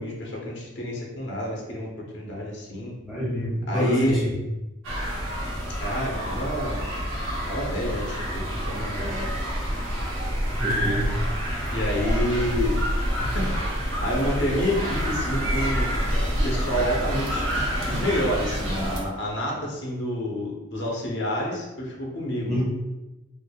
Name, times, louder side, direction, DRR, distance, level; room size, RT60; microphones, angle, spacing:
voice 1, 0.0-1.9 2.1-2.9 3.7-4.2 5.8-6.8 7.5-8.2 8.7-9.1 11.7-12.8 13.2-16.0 16.4-17.5 17.9-22.6, equal, 55° left, -2 dB, 0.7 m, -28 dB
voice 2, 3.0-4.3 10.6-11.1 22.5-22.6, equal, ahead, -7 dB, 1.0 m, -26 dB
sound 1, 4.8-19.0, equal, 75° right, 0.8 m, -27 dB
4.4 x 2.5 x 2.3 m, 1.0 s
head